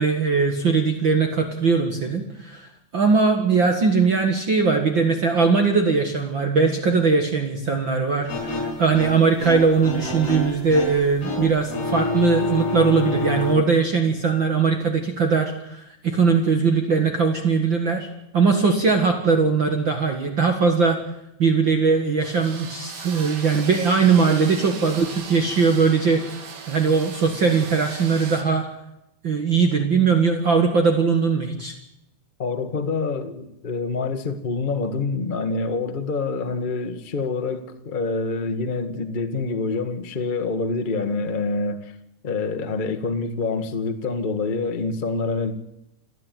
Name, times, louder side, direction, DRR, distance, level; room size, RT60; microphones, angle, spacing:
voice 1, 0.0-2.7 2.9-18.1 18.3-21.0 21.4-26.2 26.7-28.7 29.2-31.7, right 5 dB, 45° right, 2.0 m, -20 dB
sound 1, 8.3-13.6, left 1 dB, 65° left, 6.8 m, -28 dB
sound 2, 22.2-28.4, right 5 dB, 70° right, 3.8 m, -38 dB
voice 2, 32.4-41.9 42.2-45.5, left 3 dB, 90° left, 0.4 m, -26 dB
28.5 x 9.9 x 9.2 m
omnidirectional pair, 3.8 m